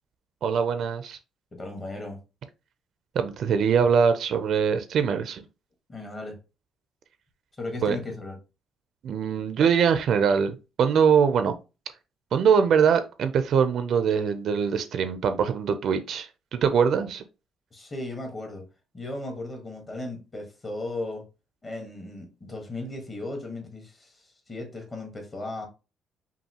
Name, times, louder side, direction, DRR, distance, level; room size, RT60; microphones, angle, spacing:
voice 1, 0.4-1.2 3.1-5.4 7.8-8.0 9.0-11.5 12.3-17.2, right 7 dB, 55° right, 0.5 m, -23 dB
voice 2, 1.5-2.2 5.9-6.4 7.6-8.4 17.7-18.7 18.9-21.2 21.6-24.1 24.5-25.7, left 2 dB, 25° left, 1.4 m, -36 dB
5.4 x 2.6 x 2.9 m
cardioid pair, 150°, 0 cm